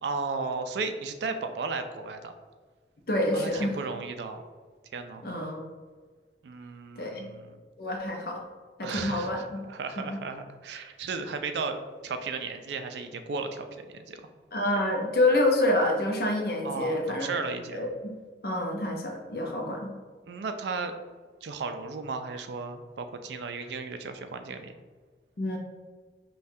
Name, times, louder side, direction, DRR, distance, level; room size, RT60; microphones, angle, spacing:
voice 1, 0.0-2.3 3.3-4.4 4.9-5.2 6.4-7.6 8.8-14.2 16.6-17.8 20.2-20.9 21.4-24.7, right 4 dB, 75° right, 8 dB, 0.4 m, -35 dB
voice 2, 3.1-3.8 5.2-5.6 7.0-7.3 7.8-8.4 8.8-9.6 10.0-10.2 14.5-18.2 18.4-19.9 25.4-25.6, left 1 dB, 55° left, 1 dB, 0.6 m, -27 dB
5.3 x 2.3 x 2.7 m, 1.5 s
head